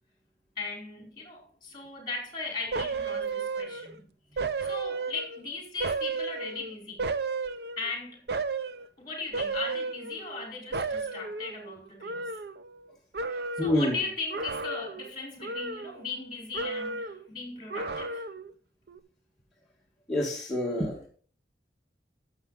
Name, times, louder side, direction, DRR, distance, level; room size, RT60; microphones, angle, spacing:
voice 1, 0.6-4.0 4.3-7.1 7.8-8.3 9.0-12.3 13.3-18.3, left 4 dB, 25° left, 4.3 m, -38 dB
sound 1, 2.7-4.0 4.4-5.4 5.8-7.9 8.3-8.9 9.3-10.5 10.7-12.9 13.1-13.8 14.3-15.1 15.4-16.3 16.5-17.3 17.7-18.5 18.9-19.0, right 4 dB, 65° right, 0.6 m, -33 dB
voice 2, 13.6-14.0 20.1-21.0, left 1 dB, ahead, 1.6 m, -27 dB
11.0 x 7.3 x 3.9 m
head